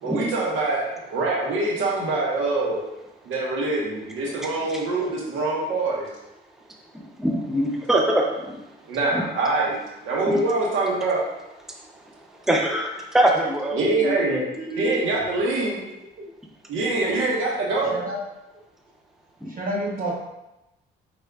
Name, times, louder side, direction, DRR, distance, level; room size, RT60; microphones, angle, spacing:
voice 1, 0.0-2.8 3.2-6.1 8.9-9.8 10.0-11.2 13.7-14.4 14.8-15.8 16.7-18.0, right 2 dB, 90° right, -3 dB, 1.2 m, -24 dB
voice 2, 7.2-8.2 9.1-9.2 10.3-10.4 12.5-14.5 19.4-19.5, right 1 dB, ahead, 0 dB, 0.6 m, -23 dB
voice 3, 14.5-15.0 17.9-18.2 19.6-20.1, right 1 dB, 45° right, -2 dB, 1.2 m, -29 dB
5.1 x 4.1 x 2.4 m, 0.94 s
cardioid pair, 90°, 20 cm